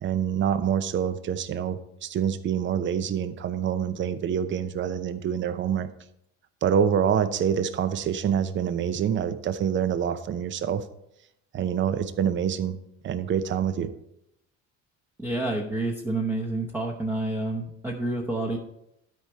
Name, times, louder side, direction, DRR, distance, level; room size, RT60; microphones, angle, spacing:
voice 1, 0.0-5.9 6.6-10.8 11.5-12.8 13.0-13.9, right 8 dB, 40° right, 12 dB, 0.7 m, -26 dB
voice 2, 15.2-18.6, right 2 dB, 10° right, 0 dB, 0.9 m, -29 dB
12.5 x 4.9 x 4.4 m, 0.80 s
cardioid pair, 125°, 30 cm